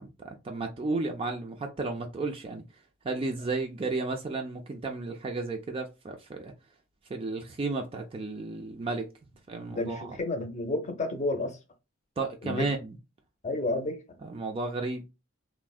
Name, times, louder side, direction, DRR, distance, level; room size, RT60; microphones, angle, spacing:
voice 1, 0.0-2.6 3.0-6.5 7.1-9.1 9.5-10.2 12.2-13.0 14.2-15.0, right 3 dB, 25° right, 0.3 m, -33 dB
voice 2, 9.7-11.6 12.4-12.7 13.4-14.0, left 2 dB, 35° left, 0.6 m, -31 dB
3.4 x 2.1 x 2.3 m
head